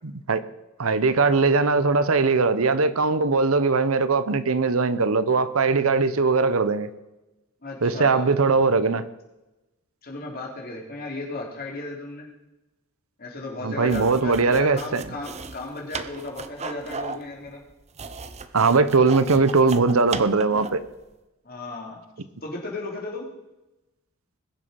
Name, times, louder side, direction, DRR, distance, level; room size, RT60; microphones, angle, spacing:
voice 1, 0.0-0.4 0.8-6.9 7.8-9.0 13.6-15.0 18.5-20.8, right 4 dB, 75° right, 0.9 m, -20 dB
voice 2, 7.6-8.3 10.0-12.3 13.2-17.6 21.4-22.0 22.4-23.3, left 2 dB, 45° left, 3.5 m, -35 dB
sound 1, 13.8-20.9, right 4 dB, 30° right, 0.7 m, -36 dB
21.0 x 7.0 x 5.2 m
head